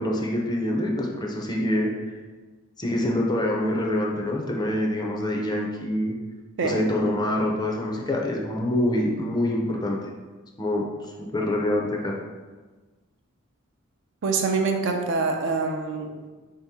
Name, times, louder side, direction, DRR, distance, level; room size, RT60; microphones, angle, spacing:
voice 1, 0.0-1.9 2.8-6.1 6.6-10.0 10.6-10.8 11.3-12.1, left 1 dB, 20° left, -1 dB, 0.5 m, -25 dB
voice 2, 14.2-16.1, right 4 dB, 60° right, 3 dB, 0.5 m, -25 dB
3.9 x 2.8 x 3.6 m, 1.3 s
head